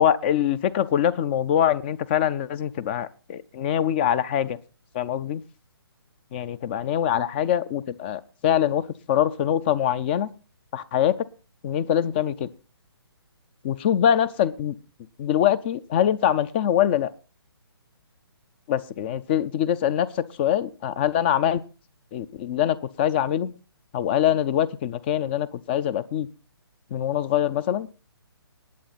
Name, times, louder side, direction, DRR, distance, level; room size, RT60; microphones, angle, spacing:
voice 1, 0.0-4.6 4.9-5.4 6.3-10.3 10.7-11.2 11.6-12.5 13.6-14.7 15.2-17.1 18.7-21.6 22.1-23.5 23.9-26.3 26.9-27.9, left 10 dB, 25° left, 20 dB, 0.5 m, -23 dB
20.0 x 7.7 x 4.0 m, 0.32 s
figure-of-eight pair, 135°, 13 cm